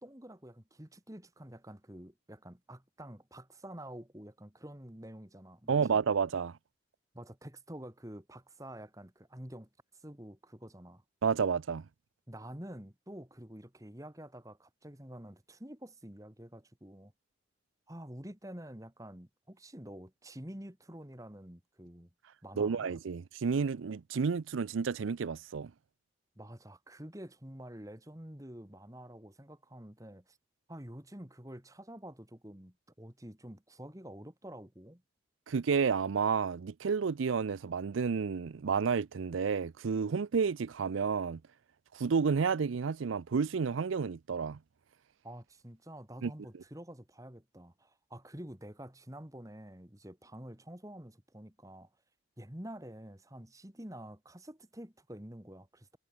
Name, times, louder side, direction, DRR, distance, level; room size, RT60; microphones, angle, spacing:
voice 1, 0.0-6.0 7.1-11.0 12.3-17.1 17.9-22.1 22.4-22.9 26.4-30.4 30.7-35.0 45.2-51.9 52.4-56.0, right 1 dB, 15° right, 2.2 m, -48 dB
voice 2, 5.7-6.6 11.2-11.9 22.6-25.7 35.5-41.4 41.9-44.6 46.2-46.3, right 5 dB, 85° right, 0.5 m, -31 dB
head